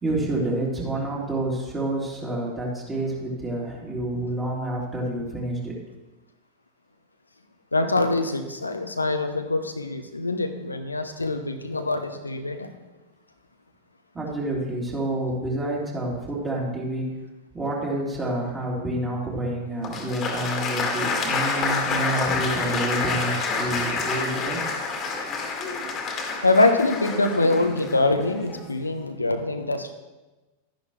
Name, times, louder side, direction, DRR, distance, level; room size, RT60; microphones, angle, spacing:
voice 1, 0.0-5.8 14.1-17.1 17.5-24.6, right 1 dB, 15° right, -4 dB, 3.4 m, -28 dB
voice 2, 7.7-12.7 21.5-22.3 22.6-22.7 26.4-29.9, left 2 dB, 80° left, 7 dB, 0.8 m, -24 dB
Applause, 19.8-28.8, left 4 dB, 25° left, 1.9 m, -28 dB
12.5 x 10.5 x 3.2 m, 1.1 s
figure-of-eight pair, 90°, 0 cm